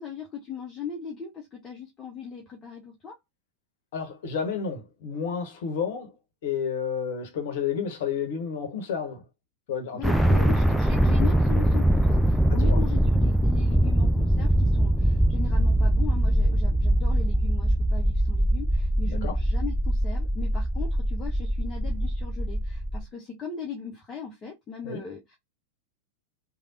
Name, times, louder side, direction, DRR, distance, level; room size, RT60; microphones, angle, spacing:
voice 1, 0.0-3.2 9.9-25.4, left 6 dB, 20° left, 0.8 m, -39 dB
voice 2, 3.9-6.1 6.4-9.2 9.7-10.6 12.5-12.8 19.0-19.4 24.8-25.0, left 6 dB, 55° left, 1.0 m, -31 dB
sound 1, 10.0-23.0, right 1 dB, ahead, 0.4 m, -22 dB
3.3 x 2.3 x 2.5 m
figure-of-eight pair, 90°, 0 cm